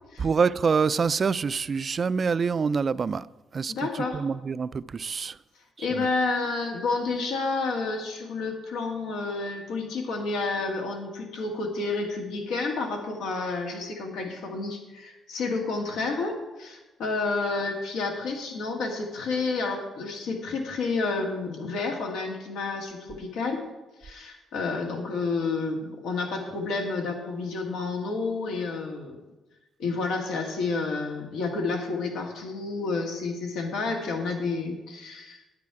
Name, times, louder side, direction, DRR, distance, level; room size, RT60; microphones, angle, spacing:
voice 1, 0.2-3.3 3.5-5.4 5.8-6.1, right 5 dB, 40° right, 0.3 m, -26 dB
voice 2, 3.7-4.2 5.8-23.6 24.0-29.2 29.8-35.4, left 3 dB, 85° left, 1.7 m, -30 dB
9.7 x 9.5 x 4.7 m
cardioid pair, 90°, 0 cm